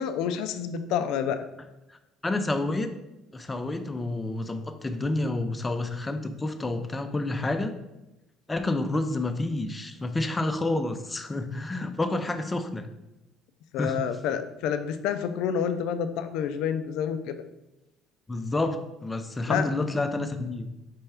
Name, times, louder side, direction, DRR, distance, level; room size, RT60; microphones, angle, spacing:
voice 1, 0.0-1.4 13.7-17.4 19.5-19.7, left 7 dB, 75° left, 9 dB, 0.3 m, -28 dB
voice 2, 2.2-2.9 3.3-7.7 8.5-12.9 13.8-14.0 18.3-20.7, left 2 dB, 20° left, 8 dB, 0.5 m, -29 dB
4.3 x 3.4 x 3.4 m, 0.95 s
supercardioid pair, 90°, 0 cm